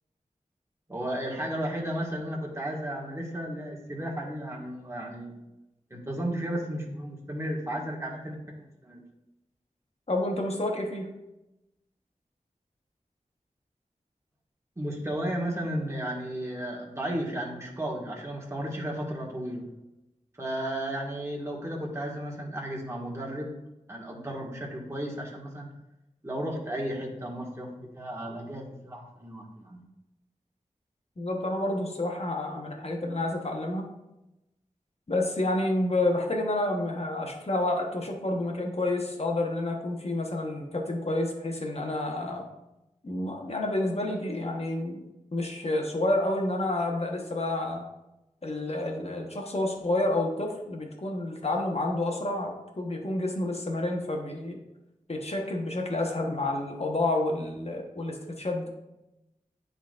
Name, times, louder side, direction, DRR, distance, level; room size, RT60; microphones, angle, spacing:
voice 1, 0.9-5.3 5.9-8.4 8.8-9.0 14.8-19.6 20.4-23.5 23.9-25.7 26.2-29.8, right 1 dB, 20° right, -3 dB, 1.8 m, -34 dB
voice 2, 10.1-11.1 31.2-33.8 35.1-42.4 43.0-45.0 45.3-47.8 48.4-54.6 55.1-58.7, left 2 dB, 50° left, 1 dB, 1.2 m, -29 dB
9.9 x 4.0 x 2.5 m, 0.95 s
wide cardioid pair, 55°, 13 cm